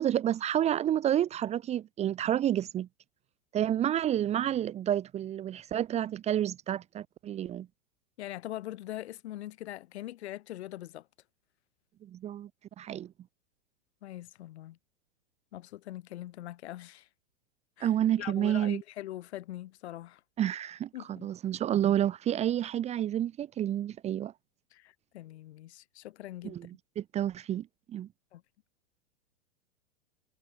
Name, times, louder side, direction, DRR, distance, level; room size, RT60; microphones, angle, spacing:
voice 1, 0.0-2.9 3.5-7.7 12.0-12.5 12.8-13.1 17.8-18.8 20.4-24.3 26.4-26.7 27.0-28.1, right 11 dB, 20° right, 1.5 m, -29 dB
voice 2, 8.2-11.1 14.0-14.8 15.5-17.1 17.8-17.9 18.2-20.2 20.9-21.3 24.7-26.6 28.3-28.4, left 14 dB, 60° left, 4.8 m, -42 dB
supercardioid pair, 160°, 36 cm